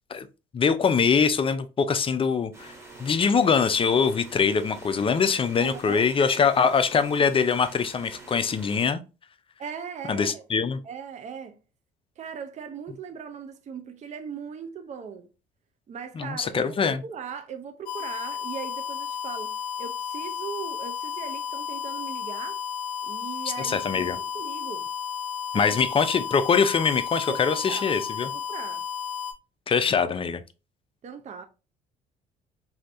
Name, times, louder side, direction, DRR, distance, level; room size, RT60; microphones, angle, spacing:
voice 1, 0.5-2.7 3.0-9.0 10.1-10.8 16.2-17.0 23.6-24.2 25.5-28.3 29.7-30.4, left 6 dB, 30° left, 0.4 m, -23 dB
sound 1, 2.5-8.9, right 2 dB, 15° right, 1.4 m, -46 dB
voice 2, 5.6-6.1 9.6-10.4 10.8-11.6 12.2-15.3 15.9-22.6 23.0-24.9 25.5-25.8 27.3-27.9 28.2-28.9 31.0-31.4, right 6 dB, 40° right, 0.5 m, -39 dB
sound 2, 17.9-29.3, left 8 dB, 90° left, 0.5 m, -33 dB
3.2 x 2.7 x 2.5 m
hypercardioid pair, 60°, 19 cm